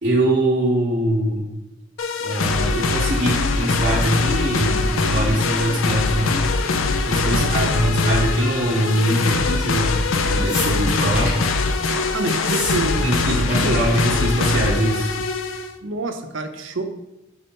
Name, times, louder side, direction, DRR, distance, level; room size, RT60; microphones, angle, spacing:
voice 1, 0.0-1.5 2.2-6.4 7.0-11.4 13.0-15.1, right 1 dB, 35° right, -4 dB, 0.8 m, -22 dB
sound 1, 2.0-15.7, left 3 dB, 80° left, 0.5 m, -22 dB
voice 2, 7.3-8.0 12.1-13.8 15.8-16.8, right 2 dB, 70° right, 6 dB, 0.7 m, -27 dB
sound 2, 10.5-11.5 12.3-12.8 13.0-13.6 13.8-14.0 14.3-14.6 15.5-15.6, left 2 dB, 30° left, 2.0 m, -29 dB
4.8 x 4.3 x 5.2 m, 0.94 s
head